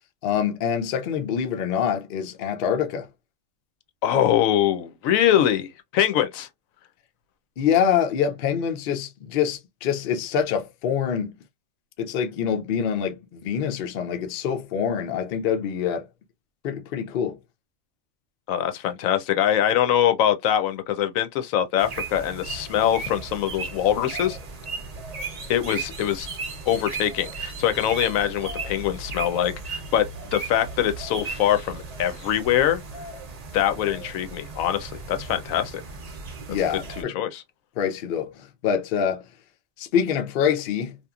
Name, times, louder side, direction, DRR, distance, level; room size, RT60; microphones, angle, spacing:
voice 1, 0.2-3.1 7.6-11.3 12.0-16.1 16.6-17.4 36.5-37.2 37.8-39.2 39.8-41.0, left 8 dB, 60° left, 0.6 m, -25 dB
voice 2, 4.0-6.5 18.5-24.4 25.5-26.3 26.7-30.0 30.3-32.8 33.5-35.8 37.0-37.4, left 10 dB, 85° left, 1.0 m, -23 dB
sound 1, 21.8-37.0, right 4 dB, 45° right, 0.5 m, -36 dB
2.9 x 2.4 x 2.3 m
omnidirectional pair, 1.4 m